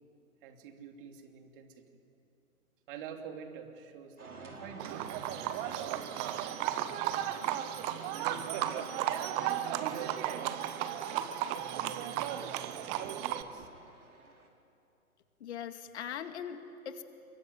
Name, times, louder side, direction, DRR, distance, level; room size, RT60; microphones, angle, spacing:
voice 1, 0.4-1.8 2.9-7.2 8.1-9.3 9.8-13.8, right 7 dB, 40° right, 5 dB, 2.9 m, -48 dB
sound 1, 4.2-14.5, right 3 dB, 80° right, 5.1 m, -51 dB
Livestock farm animals working animals, 4.8-13.4, right 11 dB, 15° right, 0.6 m, -34 dB
voice 2, 15.4-17.0, left 8 dB, 50° left, 8 dB, 2.2 m, -40 dB
26.5 x 23.0 x 9.5 m, 2.7 s
hypercardioid pair, 135°, 43 cm